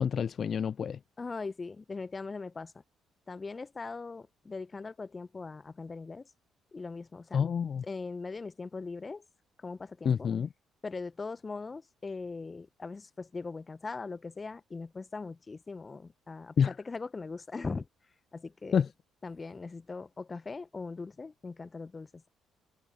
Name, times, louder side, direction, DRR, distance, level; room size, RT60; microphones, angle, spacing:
voice 1, 0.0-1.0 7.3-7.8 10.0-10.5 16.6-16.7 18.7-18.9, left 7 dB, 50° left, 0.6 m, -28 dB
voice 2, 1.2-2.7 3.3-6.2 6.7-7.4 7.8-9.2 9.6-10.3 10.8-17.9 18.3-18.8 19.2-22.3, left 4 dB, 30° left, 1.3 m, -40 dB
figure-of-eight pair, 45°, 0 cm